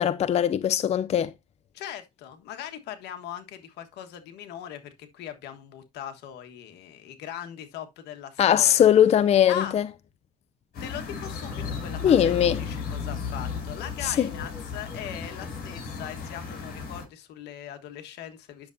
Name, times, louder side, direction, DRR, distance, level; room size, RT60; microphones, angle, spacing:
voice 1, 0.0-1.3 8.4-9.9 12.0-12.6 14.0-14.3, left 9 dB, 40° left, 0.5 m, -20 dB
voice 2, 1.7-8.9 9.5-9.8 10.8-18.7, left 10 dB, 85° left, 1.4 m, -40 dB
sound 1, 10.7-17.0, left 5 dB, 60° left, 5.8 m, -35 dB
10.0 x 6.7 x 2.7 m
cardioid pair, 110°, 17 cm